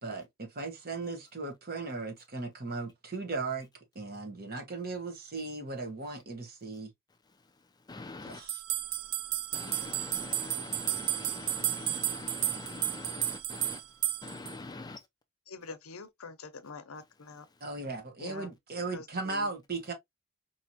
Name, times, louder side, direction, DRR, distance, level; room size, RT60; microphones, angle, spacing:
voice 1, 0.0-3.7 3.9-6.9 8.2-8.6 17.6-19.9, right 3 dB, 45° right, 1.4 m, -37 dB
voice 2, 7.9-8.4 9.5-13.8 14.2-15.0, left 3 dB, 20° left, 0.4 m, -43 dB
sound 1, 8.5-14.5, right 13 dB, 70° right, 0.5 m, -33 dB
voice 3, 15.5-17.5 18.2-18.5 18.9-19.5, left 4 dB, 80° left, 0.8 m, -45 dB
4.6 x 2.9 x 2.8 m
head